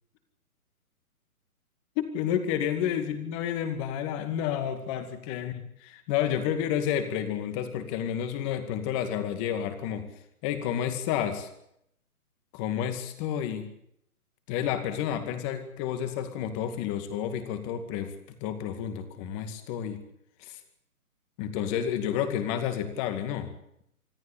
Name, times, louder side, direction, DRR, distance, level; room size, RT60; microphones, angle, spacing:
voice 1, 2.0-10.1 10.4-11.5 12.5-13.7 14.5-18.1 18.4-20.0 20.4-20.6 21.4-23.5, left 9 dB, 20° left, 9 dB, 2.2 m, -30 dB
25.5 x 14.0 x 8.6 m, 0.75 s
hypercardioid pair, 160°, 44 cm